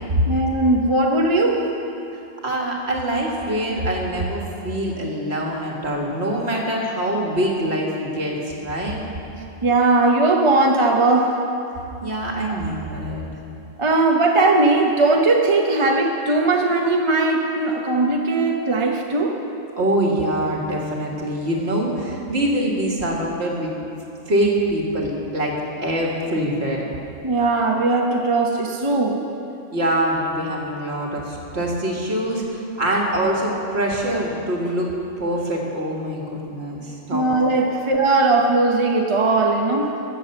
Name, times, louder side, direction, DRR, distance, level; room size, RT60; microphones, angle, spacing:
voice 1, 0.3-1.7 9.6-11.4 12.5-12.6 13.8-19.3 27.2-29.3 37.1-40.0, right 2 dB, 25° right, 1 dB, 0.8 m, -19 dB
voice 2, 2.4-9.0 12.0-13.3 19.8-23.7 24.3-25.6 25.8-26.9 29.7-34.9 35.2-37.3 37.6-37.8, right 1 dB, 55° right, -1 dB, 2.0 m, -24 dB
15.0 x 7.6 x 6.6 m, 2.9 s
omnidirectional pair, 1.3 m